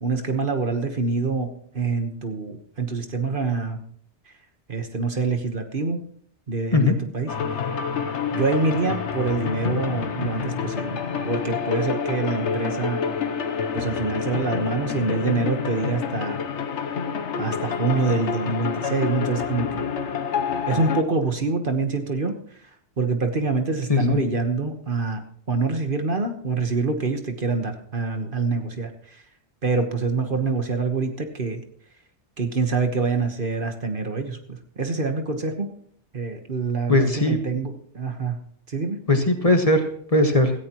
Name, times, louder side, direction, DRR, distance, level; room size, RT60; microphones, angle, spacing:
voice 1, 0.0-3.8 4.3-4.4 4.7-6.0 6.5-7.3 8.3-13.0 13.7-16.4 17.4-19.9 20.7-22.7 23.0-25.2 25.5-29.2 29.6-31.6 32.4-35.7 36.1-38.4 38.7-39.0, right 4 dB, 50° right, 6 dB, 1.4 m, -26 dB
sound 1, 7.3-21.0, left 6 dB, 80° left, 1.2 m, -28 dB
voice 2, 36.9-37.4 39.1-40.5, left 2 dB, 30° left, 5 dB, 1.5 m, -19 dB
17.5 x 14.0 x 3.0 m, 0.62 s
omnidirectional pair, 1.2 m